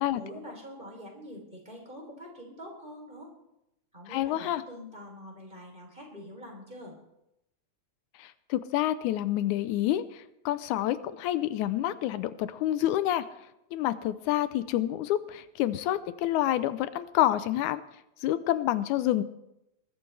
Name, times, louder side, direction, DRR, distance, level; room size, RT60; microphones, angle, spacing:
voice 1, 0.1-3.3 3.9-6.9, equal, 15° right, -1 dB, 3.4 m, -45 dB
voice 2, 4.1-4.6 8.2-13.3 13.7-17.8 18.2-19.2, left 13 dB, 85° left, 14 dB, 2.1 m, -28 dB
21.0 x 12.5 x 3.3 m, 0.85 s
omnidirectional pair, 3.4 m